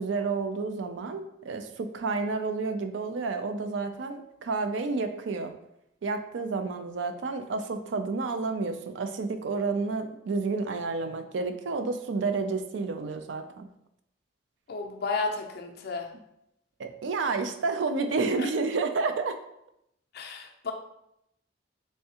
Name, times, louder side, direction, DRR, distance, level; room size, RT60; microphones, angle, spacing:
voice 1, 0.0-5.5 6.0-13.7 16.8-19.4, right 4 dB, 80° right, 8 dB, 0.4 m, -30 dB
voice 2, 14.7-16.1 18.4-18.5 20.1-20.7, left 4 dB, 60° left, 2 dB, 0.5 m, -32 dB
3.5 x 3.2 x 2.8 m, 0.79 s
head